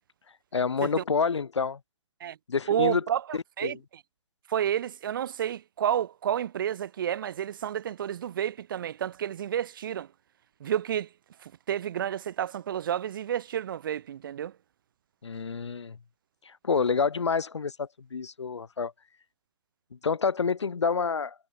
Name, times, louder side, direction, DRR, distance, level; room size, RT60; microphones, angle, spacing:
voice 1, 0.5-1.8 2.5-3.0 3.3-3.8 15.2-16.0 16.4-18.9 19.9-21.3, left 5 dB, 70° left, 1.6 m, -28 dB
voice 2, 2.7-3.8 4.5-10.1 10.6-11.1 11.4-14.5, right 10 dB, 45° right, 0.7 m, -30 dB
figure-of-eight pair, 130°, 16 cm